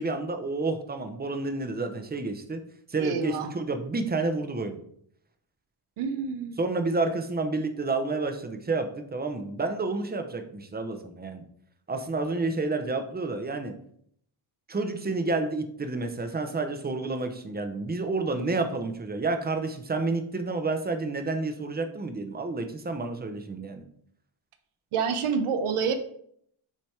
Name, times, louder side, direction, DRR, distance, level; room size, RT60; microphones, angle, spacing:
voice 1, 0.0-2.6 2.9-4.8 6.6-11.4 11.9-13.7 14.7-23.8, right 3 dB, 20° right, 7 dB, 0.6 m, -30 dB
voice 2, 3.0-3.5 6.0-6.6 24.9-25.9, right 6 dB, 85° right, 8 dB, 0.8 m, -28 dB
7.2 x 3.4 x 4.5 m, 0.67 s
wide cardioid pair, 150°, 49 cm